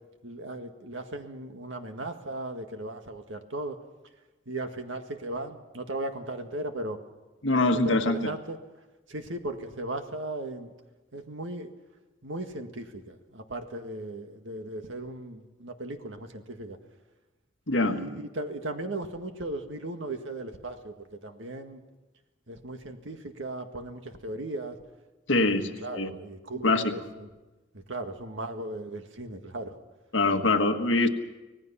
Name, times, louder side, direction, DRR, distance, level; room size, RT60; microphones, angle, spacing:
voice 1, 0.2-3.8 4.4-7.0 7.8-8.6 9.1-10.7 11.1-11.7 12.2-16.8 17.8-21.8 22.5-24.8 25.3-27.3 27.7-29.8, right 1 dB, 75° right, 6 dB, 1.8 m, -37 dB
voice 2, 7.4-8.3 17.7-18.0 25.3-25.6 26.0-26.1 26.6-26.9 30.1-31.1, left 2 dB, 70° left, 6 dB, 1.6 m, -23 dB
25.5 x 18.0 x 5.8 m, 1.1 s
head